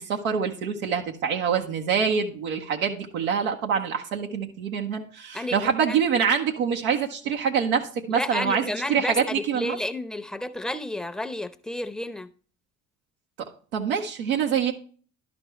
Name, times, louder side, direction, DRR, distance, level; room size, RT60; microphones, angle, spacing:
voice 1, 0.0-9.8 13.7-14.7, right 7 dB, 85° right, 0.9 m, -25 dB
voice 2, 8.1-12.3, left 1 dB, ahead, 0.7 m, -31 dB
11.5 x 5.2 x 3.0 m
hypercardioid pair, 55°, 41 cm